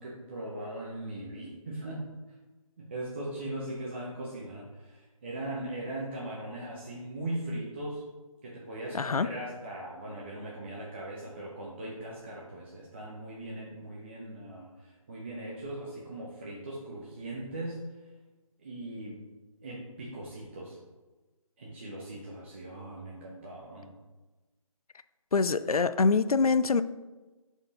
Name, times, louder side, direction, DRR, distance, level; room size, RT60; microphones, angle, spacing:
voice 1, 0.0-2.0 2.8-8.0 8.4-17.9 18.6-19.2 19.6-20.8 21.6-24.0, right 1 dB, 20° right, -5 dB, 0.6 m, -39 dB
voice 2, 8.9-9.3 25.3-26.8, left 4 dB, 80° left, 14 dB, 0.4 m, -24 dB
5.4 x 4.5 x 3.9 m, 1.2 s
figure-of-eight pair, 155°, 19 cm